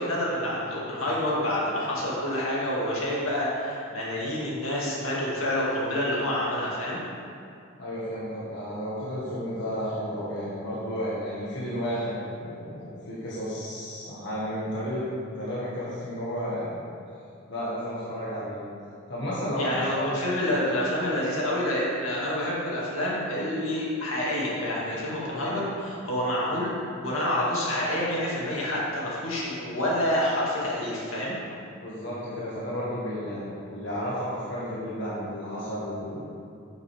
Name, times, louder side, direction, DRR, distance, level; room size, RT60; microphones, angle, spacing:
voice 1, 0.0-7.0 19.6-31.4, left 1 dB, 75° left, -6 dB, 2.2 m, -28 dB
voice 2, 7.8-15.0 15.4-16.9 17.5-18.6 19.1-20.5 25.3-25.6 31.8-36.2, equal, 55° left, -8 dB, 1.7 m, -32 dB
10.5 x 7.1 x 3.5 m, 2.5 s
head